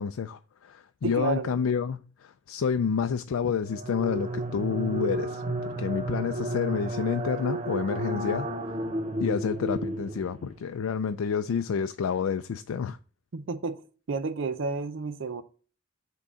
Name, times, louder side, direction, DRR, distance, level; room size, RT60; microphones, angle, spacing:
voice 1, 0.0-5.4 5.8-8.5 9.2-13.0, left 6 dB, 90° left, 0.4 m, -29 dB
voice 2, 1.0-1.5 13.3-13.8 14.1-15.4, right 3 dB, 65° right, 0.5 m, -31 dB
sound 1, 3.7-10.6, right 1 dB, 30° right, 0.7 m, -32 dB
6.2 x 3.8 x 5.4 m
head